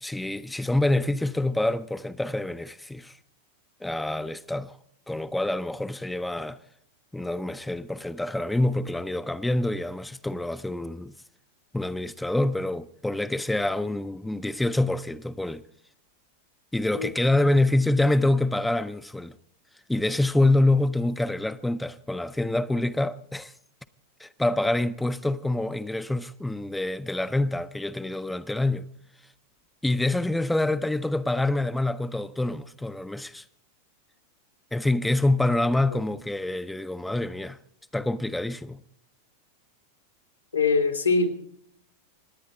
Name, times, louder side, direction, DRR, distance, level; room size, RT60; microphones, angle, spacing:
voice 1, 0.0-3.2 3.8-4.8 5.1-6.6 7.1-11.1 11.7-15.6 16.7-19.3 19.9-23.5 24.2-28.9 29.8-33.4 34.7-37.6 37.9-38.8, left 2 dB, 5° left, 0.5 m, -26 dB
voice 2, 40.5-41.3, left 4 dB, 85° left, 2.4 m, -23 dB
27.0 x 10.0 x 4.2 m
figure-of-eight pair, 90°, 0 cm